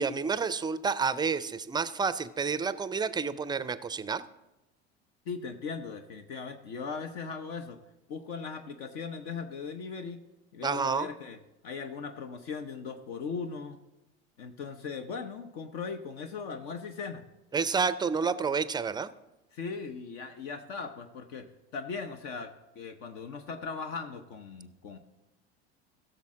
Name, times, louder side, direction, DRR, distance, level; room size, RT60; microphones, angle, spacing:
voice 1, 0.0-4.2 10.6-11.1 17.5-19.1, right 5 dB, 15° right, 15 dB, 0.4 m, -29 dB
voice 2, 5.3-7.8 8.1-10.2 10.5-11.4 11.6-13.8 14.4-17.2 19.5-21.5 21.7-25.0, left 5 dB, 65° left, 7 dB, 0.8 m, -38 dB
15.0 x 6.6 x 3.7 m, 0.97 s
hypercardioid pair, 75°, 33 cm